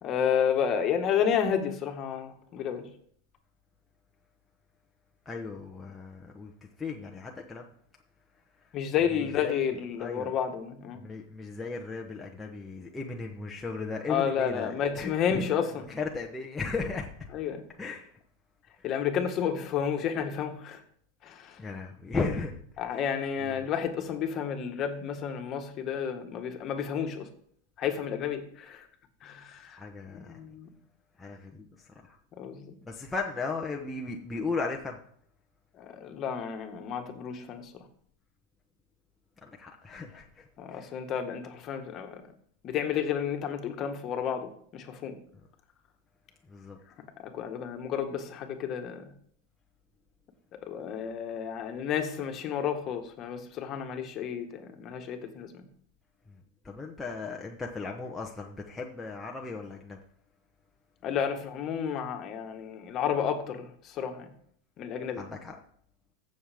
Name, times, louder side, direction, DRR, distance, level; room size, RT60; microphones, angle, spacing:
voice 1, 0.0-2.9 8.7-11.0 14.1-15.9 17.3-17.6 18.8-20.8 21.2-21.6 22.8-27.3 27.8-28.9 29.2-29.8 30.3-30.7 32.4-32.7 35.8-37.7 40.6-42.2 42.6-45.2 47.2-49.1 50.5-55.6 61.0-64.2 64.8-65.2, left 8 dB, 35° left, 5 dB, 1.6 m, -31 dB
voice 2, 5.2-6.5 6.8-7.7 8.6-8.8 9.2-10.3 10.9-17.1 17.8-18.2 18.8-18.9 21.6-23.1 23.4-23.7 29.6-30.4 31.2-32.2 32.8-35.0 39.4-40.9 46.4-46.8 56.3-60.0 65.2-65.6, left 4 dB, 10° left, -1 dB, 1.0 m, -37 dB
15.0 x 6.5 x 3.6 m, 0.63 s
supercardioid pair, 130°, 0 cm